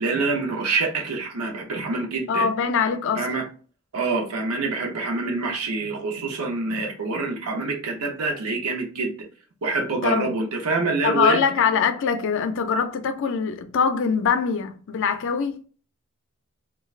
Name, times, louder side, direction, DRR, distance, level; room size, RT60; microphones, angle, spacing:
voice 1, 0.0-2.5 3.2-3.4 3.9-9.1 9.6-11.4, right 3 dB, 80° right, 0.7 m, -26 dB
voice 2, 2.3-3.3 10.0-10.4 11.0-15.6, left 6 dB, 60° left, 0.4 m, -23 dB
2.4 x 2.3 x 3.1 m
head